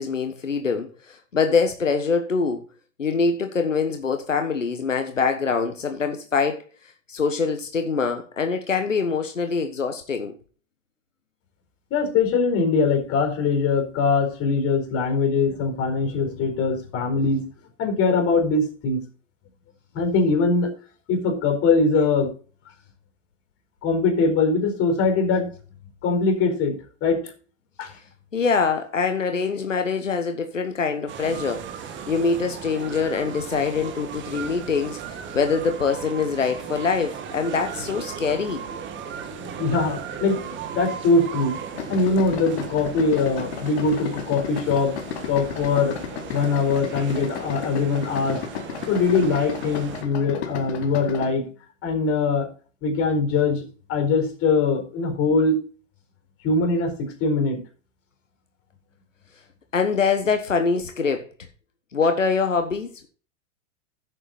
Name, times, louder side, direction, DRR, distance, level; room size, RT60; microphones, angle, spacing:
voice 1, 0.0-2.6 3.0-6.6 7.1-10.4 28.3-38.7 59.7-61.3 61.9-63.1, left 5 dB, 90° left, 1.3 m, -24 dB
voice 2, 11.9-17.4 17.8-19.0 19.9-20.7 21.1-22.3 23.8-25.5 26.0-27.2 27.8-27.9 39.4-41.6 41.9-45.0 45.3-46.0 46.3-51.4 51.8-52.5 52.8-53.6 53.9-55.6 56.4-57.6, left 4 dB, 40° left, 4.4 m, -22 dB
sound 1, 31.1-50.0, right 7 dB, 30° right, 2.0 m, -37 dB
Idling, 41.7-51.3, left 8 dB, 60° left, 2.1 m, -34 dB
11.0 x 8.1 x 4.1 m
hypercardioid pair, 95°, 37 cm